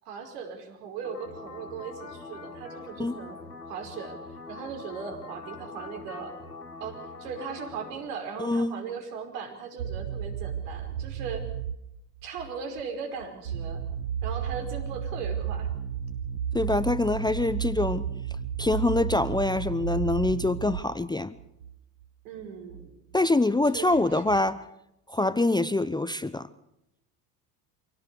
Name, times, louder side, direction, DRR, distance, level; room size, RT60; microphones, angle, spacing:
voice 1, 0.0-3.4 3.6-6.3 6.8-11.5 12.2-13.8 14.2-15.7 22.2-23.0 23.7-24.2, right 6 dB, 70° right, 5 dB, 5.1 m, -38 dB
sound 1, 1.0-7.9, left 3 dB, 85° left, 5.3 m, -43 dB
voice 2, 8.4-8.7 16.5-18.1 18.6-21.3 23.1-24.6 25.1-26.5, left 2 dB, 10° left, 15 dB, 0.8 m, -25 dB
sound 2, 9.8-12.5 12.8-12.9 13.2-21.1 21.4-21.7 22.0-22.1 22.4-22.5 22.7-22.9 23.1-23.2 23.6-24.4, right 8 dB, 85° right, 0.8 m, -33 dB
26.0 x 17.5 x 6.9 m, 0.84 s
hypercardioid pair, 70°, 48 cm